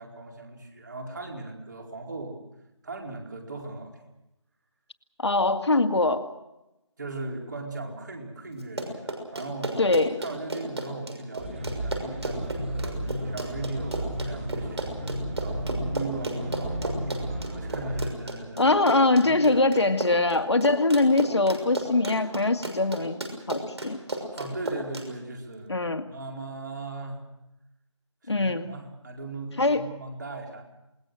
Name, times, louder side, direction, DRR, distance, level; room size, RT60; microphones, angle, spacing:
voice 1, 0.0-2.4 2.8-4.0 7.0-9.8 10.2-18.8 19.1-19.6 24.3-25.8 26.0-27.2 28.2-30.6, right 2 dB, 35° right, 1 dB, 4.4 m, -38 dB
voice 2, 5.2-6.3 9.8-10.2 18.6-23.2 23.5-24.0 25.7-26.0 28.3-28.7 29.6-29.8, left 2 dB, 60° left, 7 dB, 2.1 m, -23 dB
Run, 8.6-25.1, right 2 dB, 60° right, 6.2 m, -34 dB
sound 1, 11.4-18.1, right 1 dB, 20° right, 3.6 m, -33 dB
28.0 x 20.0 x 6.5 m, 0.92 s
figure-of-eight pair, 170°, 16 cm